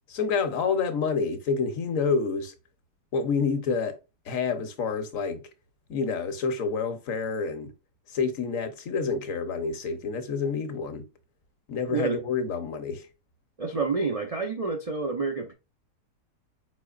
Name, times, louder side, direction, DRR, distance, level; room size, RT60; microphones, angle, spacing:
voice 1, 0.1-2.5 3.1-4.0 4.3-5.5 5.9-7.7 8.1-11.0 11.7-13.1, left 5 dB, 60° left, 1.2 m, -28 dB
voice 2, 11.9-12.2 13.6-15.5, right 4 dB, 65° right, 0.3 m, -28 dB
4.8 x 4.2 x 2.4 m
omnidirectional pair, 1.7 m